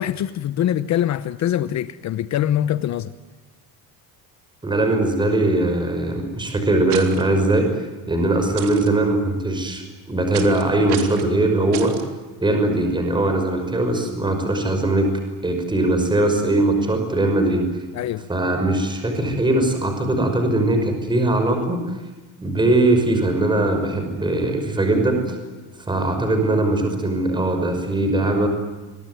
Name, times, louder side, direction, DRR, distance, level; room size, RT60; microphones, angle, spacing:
voice 1, 0.0-3.1 17.9-18.2, left 11 dB, 40° left, 0.9 m, -23 dB
voice 2, 4.6-7.7 8.1-12.0 12.4-15.1 15.4-17.7 18.3-21.8 22.4-25.4 25.9-28.5, right 2 dB, 10° right, 5.6 m, -20 dB
sound 1, 6.9-7.2 8.6-8.9 10.3-10.6 10.9-11.3 11.7-12.0, right 11 dB, 70° right, 3.6 m, -32 dB
28.0 x 23.0 x 9.3 m
cardioid pair, 150°, 41 cm